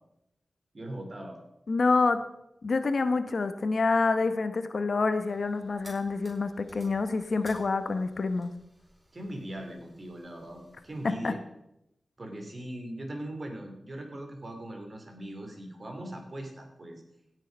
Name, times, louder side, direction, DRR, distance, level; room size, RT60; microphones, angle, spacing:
voice 1, 0.7-1.4 9.1-11.4 12.2-17.0, right 1 dB, 45° right, 4 dB, 3.0 m, -40 dB
voice 2, 1.7-2.2 2.6-8.5 11.0-11.3, left 3 dB, 65° left, 10 dB, 0.9 m, -27 dB
sound 1, 5.2-11.2, equal, 30° right, 4.7 m, -56 dB
16.5 x 6.5 x 5.2 m, 0.83 s
cardioid pair, 50°, 0 cm